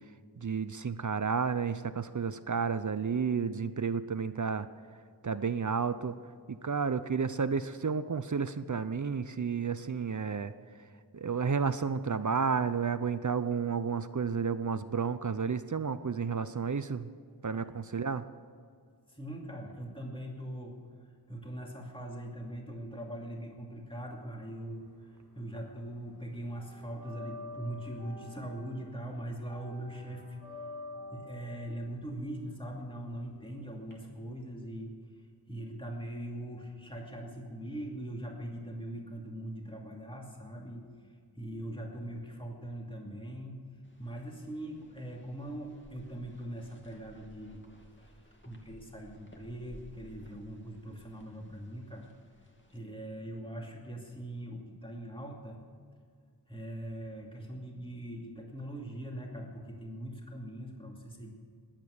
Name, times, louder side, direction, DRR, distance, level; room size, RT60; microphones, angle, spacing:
voice 1, 0.4-4.7 5.2-6.2 6.5-10.5 11.1-17.1 17.4-18.2, right 5 dB, 50° right, 13 dB, 0.6 m, -31 dB
voice 2, 19.1-30.4 31.1-34.9 35.5-43.7 44.0-52.1 52.7-55.6 56.5-61.3, right 1 dB, 15° left, -1 dB, 2.6 m, -41 dB
sound 1, 24.6-25.8 26.0-33.9, left 2 dB, 50° left, 4.3 m, -48 dB
sound 2, 43.8-52.8, equal, 30° left, 2.3 m, -58 dB
21.0 x 9.0 x 6.6 m, 2.1 s
wide cardioid pair, 60°, 40 cm